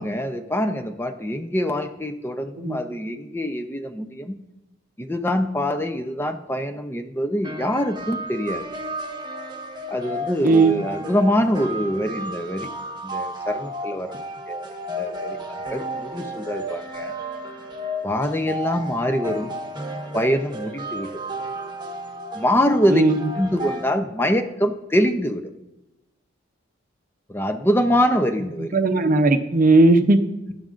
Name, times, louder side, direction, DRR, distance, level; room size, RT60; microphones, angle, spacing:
voice 1, 0.0-4.3 5.0-8.7 9.9-12.7 13.0-14.2 14.5-15.4 15.7-17.2 18.0-19.5 20.1-21.1 22.3-23.0 23.4-25.4 27.3-28.8, equal, 10° left, 7 dB, 0.6 m, -24 dB
sound 1, 7.4-23.9, right 1 dB, 20° right, 1.0 m, -33 dB
voice 2, 10.4-10.8 22.9-23.2 28.6-30.2, right 2 dB, 45° right, 9 dB, 0.7 m, -17 dB
12.0 x 11.0 x 2.5 m, 0.93 s
head